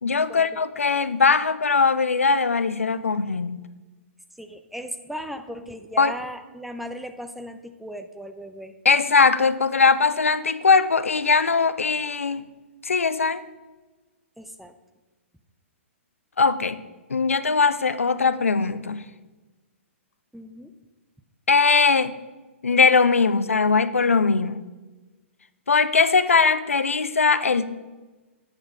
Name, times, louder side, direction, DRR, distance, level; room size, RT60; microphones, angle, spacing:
voice 1, 0.0-3.6 6.0-6.1 8.8-12.4 12.8-13.4 16.4-16.8 17.1-19.0 21.5-22.2 22.6-24.6 25.7-27.7, left 4 dB, 85° left, 14 dB, 0.4 m, -20 dB
voice 2, 4.4-8.7 14.4-14.7 20.3-20.7, equal, ahead, 7 dB, 0.5 m, -37 dB
8.7 x 4.6 x 5.0 m, 1.2 s
figure-of-eight pair, 115°, 7 cm